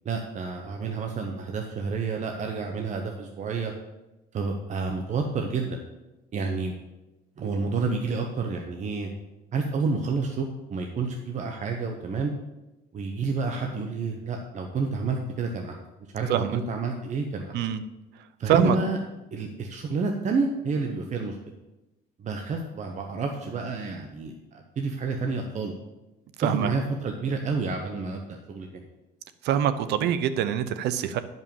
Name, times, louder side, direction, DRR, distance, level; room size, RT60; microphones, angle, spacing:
voice 1, 0.0-3.7 4.3-5.8 6.3-6.7 7.4-9.1 9.5-12.3 12.9-15.8 16.1-17.6 18.4-19.0 19.3-21.4 22.2-25.7 26.4-28.7, right 4 dB, 45° right, 2 dB, 1.2 m, -29 dB
voice 2, 26.4-26.7 29.4-31.2, right 10 dB, 80° right, 12 dB, 0.8 m, -24 dB
11.0 x 5.5 x 7.2 m, 1.0 s
cardioid pair, 110°, 17 cm